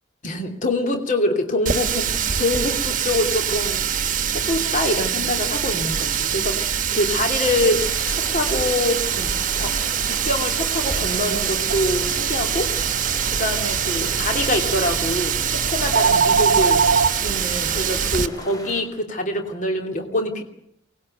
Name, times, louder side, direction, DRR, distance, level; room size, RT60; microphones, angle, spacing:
voice 1, 0.2-3.9 4.3-9.7 10.1-12.7 13.3-16.8 17.2-20.4, left 1 dB, 40° left, 4 dB, 2.9 m, -25 dB
Water tap faucet, 1.7-18.3, right 8 dB, 40° right, 1.3 m, -24 dB
sound 1, 7.4-18.8, left 1 dB, 20° left, 6.7 m, -39 dB
sound 2, 11.7-17.1, right 5 dB, 80° right, 0.9 m, -24 dB
24.0 x 20.0 x 9.1 m, 0.74 s
head